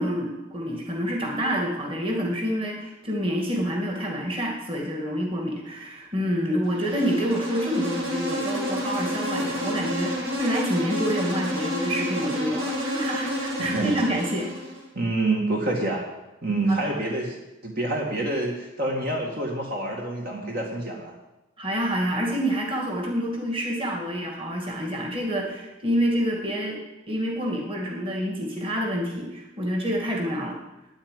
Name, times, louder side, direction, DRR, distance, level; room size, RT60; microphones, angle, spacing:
voice 1, 0.0-14.5 16.7-17.0 21.6-26.8 27.1-30.6, equal, 25° right, 0 dB, 2.3 m, -27 dB
Insect, 6.6-14.9, equal, 75° right, 4.3 m, -30 dB
voice 2, 13.6-14.0 15.0-16.1 16.4-17.3 17.6-21.1, right 2 dB, 45° right, -1 dB, 2.0 m, -27 dB
9.5 x 8.8 x 9.7 m, 0.98 s
head